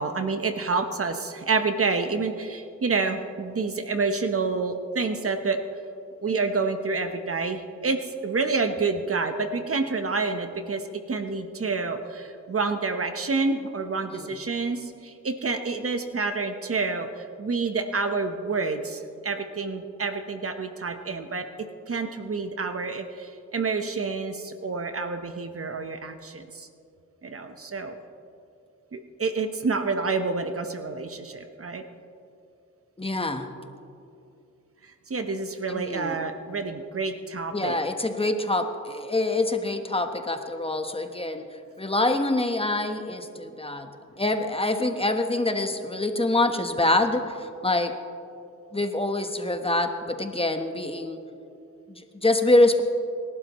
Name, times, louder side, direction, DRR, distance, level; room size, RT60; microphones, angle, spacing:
voice 1, 0.0-5.6 6.2-10.8 11.1-21.4 21.9-26.7 27.2-27.9 28.9-31.8 35.1-37.8, right 4 dB, 45° right, 7 dB, 1.1 m, -28 dB
voice 2, 33.0-33.5 35.7-36.2 37.5-41.4 41.8-43.9 44.2-47.9 48.7-51.2 51.9-52.8, left 2 dB, 20° left, 6 dB, 1.2 m, -25 dB
28.0 x 12.0 x 3.1 m, 2.6 s
cardioid pair, 65°, 30 cm